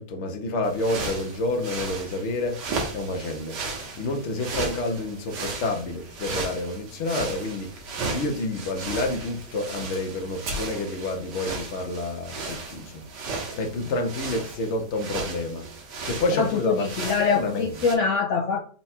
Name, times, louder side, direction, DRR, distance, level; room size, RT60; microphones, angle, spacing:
voice 1, 0.0-2.6 2.9-3.6 3.9-7.7 8.1-13.0 13.6-15.6 16.0-16.9 17.2-17.7, left 2 dB, 55° left, 3 dB, 0.8 m, -29 dB
sound 1, 0.6-17.9, right 3 dB, 80° right, 1.6 m, -35 dB
voice 2, 16.1-18.6, left 6 dB, 80° left, 3 dB, 0.6 m, -25 dB
4.2 x 2.3 x 4.2 m, 0.44 s
omnidirectional pair, 1.8 m